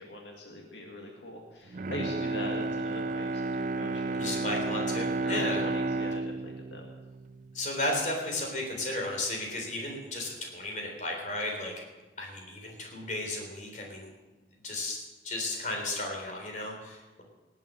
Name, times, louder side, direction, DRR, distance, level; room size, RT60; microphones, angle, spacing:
voice 1, 0.0-4.4 5.2-6.8, left 1 dB, 80° left, 0 dB, 2.1 m, -41 dB
Bowed string instrument, 1.7-7.9 8.3-8.4, right 3 dB, 45° right, 0.4 m, -32 dB
voice 2, 4.1-5.6 7.5-11.7 12.2-14.1 14.6-17.2, left 1 dB, 45° left, 1 dB, 3.8 m, -34 dB
18.5 x 8.7 x 7.7 m, 1.2 s
head